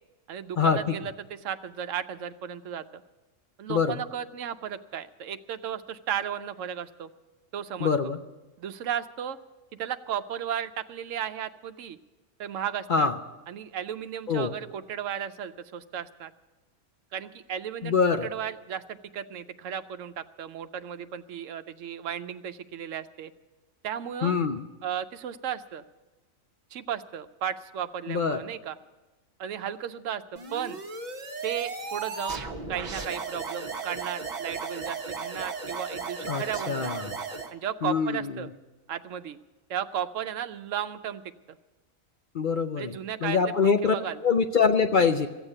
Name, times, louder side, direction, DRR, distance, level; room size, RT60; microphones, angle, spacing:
voice 1, 0.3-2.8 3.6-7.1 7.5-7.9 8.6-9.4 9.7-12.0 12.4-13.1 13.5-16.3 17.1-23.3 23.8-24.4 24.8-25.8 26.7-28.8 29.4-30.8 31.4-32.4 32.7-37.1 37.5-38.5 38.9-39.4 39.7-41.2 41.5-41.6 42.8-44.2, right 9 dB, 75° right, 11 dB, 1.0 m, -35 dB
voice 2, 3.7-4.0 7.8-8.2 12.9-13.1 14.3-14.5 17.8-18.3 24.2-24.6 28.1-28.4 36.3-37.2 37.8-38.3 42.3-43.9 44.2-45.3, left 5 dB, 50° left, 7 dB, 0.6 m, -24 dB
sound 1, 30.4-37.5, right 4 dB, 35° right, 1.0 m, -35 dB
15.0 x 8.1 x 9.8 m, 1.1 s
omnidirectional pair, 1.3 m